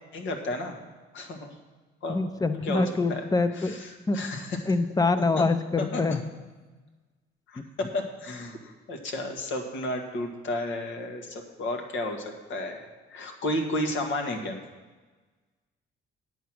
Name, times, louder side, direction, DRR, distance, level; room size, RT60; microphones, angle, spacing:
voice 1, 0.1-0.8 1.1-1.5 2.0-2.2 2.6-2.8 3.1-3.2 3.6-4.6 5.4-5.5 5.9-6.0 7.5-14.6, left 1 dB, 75° left, 3 dB, 1.7 m, -32 dB
voice 2, 2.1-3.8 4.1-6.2 7.6-7.7, left 3 dB, 20° left, 11 dB, 0.6 m, -26 dB
9.4 x 8.1 x 6.1 m, 1.3 s
cardioid pair, 100°, 20 cm